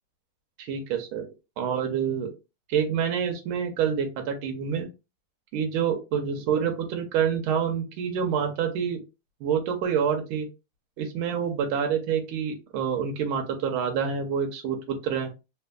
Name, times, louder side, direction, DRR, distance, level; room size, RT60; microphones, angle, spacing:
voice 1, 0.6-1.2 1.6-2.3 2.7-4.9 5.5-9.0 9.4-10.5 11.0-15.3, right 7 dB, 85° right, 3 dB, 1.5 m, -27 dB
3.4 x 2.8 x 2.2 m, 0.27 s
omnidirectional pair, 2.3 m